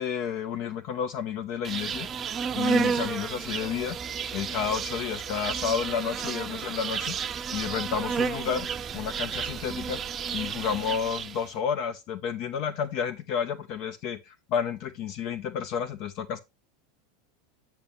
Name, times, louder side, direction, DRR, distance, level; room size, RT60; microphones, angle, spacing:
voice 1, 0.0-2.1 2.6-4.0 4.3-8.7 8.9-16.4, left 7 dB, 50° left, 0.6 m, -31 dB
Insect, 1.6-11.5, right 6 dB, 30° right, 0.5 m, -31 dB
8.4 x 5.8 x 3.1 m
hypercardioid pair, 90°, 0 cm